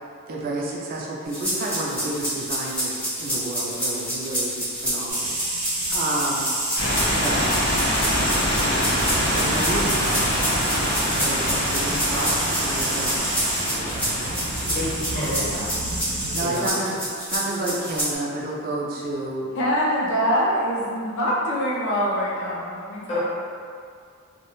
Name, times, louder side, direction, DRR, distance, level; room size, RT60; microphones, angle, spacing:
voice 1, 0.3-5.3 5.9-6.5 7.1-7.4 9.1-10.0 11.1-13.2 13.6-14.3 14.6-15.0 16.3-17.0 17.3-19.5, right 2 dB, 45° right, -3 dB, 0.3 m, -30 dB
sound 1, 1.3-18.1, equal, 5° left, 0.6 m, -29 dB
sound 2, 5.1-16.4, right 2 dB, 80° right, 0.6 m, -29 dB
sound 3, 6.8-15.3, equal, 90° left, 0.7 m, -25 dB
voice 2, 14.7-15.7 16.4-16.8 23.1-23.2, left 1 dB, 30° left, -10 dB, 0.8 m, -29 dB
voice 3, 19.6-23.2, equal, 55° left, -6 dB, 0.5 m, -24 dB
2.3 x 2.1 x 3.0 m, 2.2 s
head